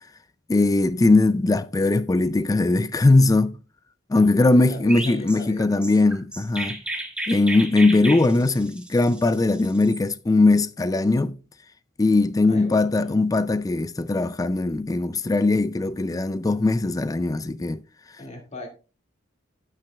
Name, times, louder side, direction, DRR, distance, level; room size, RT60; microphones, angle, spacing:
voice 1, 0.5-3.6 4.1-6.8 7.3-11.4 12.0-17.8, left 2 dB, 20° left, 0.3 m, -20 dB
voice 2, 4.1-5.9 12.5-13.2 18.2-18.7, left 2 dB, 35° left, 2.2 m, -39 dB
Chirp tweet, 4.9-10.0, right 1 dB, 5° right, 1.4 m, -33 dB
16.5 x 5.9 x 2.3 m
head